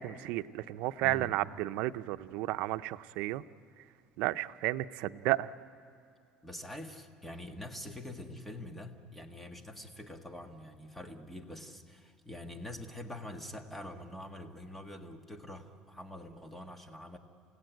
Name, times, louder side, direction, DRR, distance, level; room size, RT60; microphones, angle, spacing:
voice 1, 0.0-3.4 4.2-5.5, right 16 dB, 75° right, 11 dB, 0.6 m, -32 dB
voice 2, 1.0-1.4 6.4-17.2, left 1 dB, 5° left, 5 dB, 1.7 m, -45 dB
28.5 x 16.5 x 9.2 m, 2.5 s
cardioid pair, 135°, 2 cm